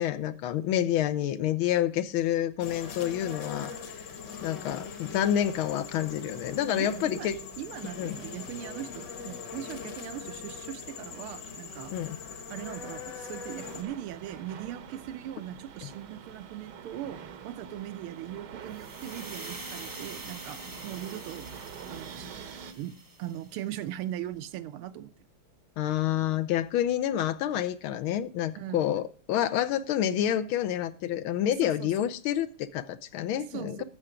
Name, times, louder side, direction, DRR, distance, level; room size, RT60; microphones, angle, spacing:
voice 1, 0.0-4.1 4.4-7.4 8.0-8.2 11.9-12.2 15.8-15.9 25.8-33.8, left 11 dB, 75° left, 13 dB, 1.5 m, -28 dB
sound 1, 2.6-13.8, left 5 dB, 55° left, 1.9 m, -41 dB
voice 2, 6.8-7.3 7.6-12.1 12.5-21.5 21.9-22.3 22.7-25.1 28.5-28.9 31.6-31.9 33.5-33.8, right 12 dB, 80° right, 12 dB, 1.6 m, -40 dB
sound 2, 13.6-22.7, right 6 dB, 60° right, 1.3 m, -45 dB
sound 3, 18.7-23.7, right 2 dB, 20° right, 0.5 m, -45 dB
13.0 x 6.7 x 4.9 m, 0.41 s
omnidirectional pair, 2.4 m